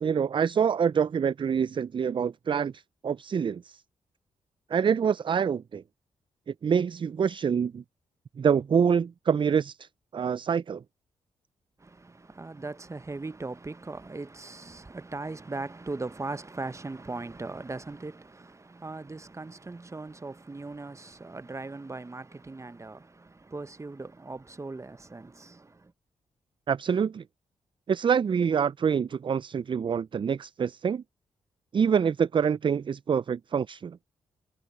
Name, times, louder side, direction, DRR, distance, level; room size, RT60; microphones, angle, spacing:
voice 1, 0.0-3.8 4.7-5.8 6.5-7.8 8.4-10.8 26.7-27.2 27.9-31.0 31.7-34.0, right 7 dB, 40° right, 0.4 m, -26 dB
voice 2, 11.8-25.9, right 3 dB, 25° right, 0.9 m, -39 dB
supercardioid pair, 45°, 13 cm